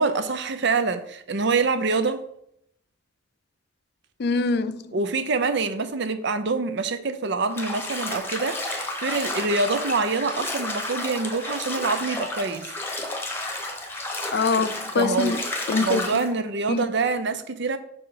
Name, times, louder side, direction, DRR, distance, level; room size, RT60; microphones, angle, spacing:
voice 1, 0.0-2.2 4.9-12.7 15.0-15.4 15.8-17.8, right 4 dB, 65° right, 0.7 m, -25 dB
voice 2, 4.2-4.9 14.3-15.4 15.7-16.0 16.7-16.9, left 4 dB, 55° left, 0.4 m, -24 dB
Bathtub (filling or washing), 7.5-16.3, left 2 dB, 10° left, 1.0 m, -31 dB
5.7 x 4.4 x 5.0 m
head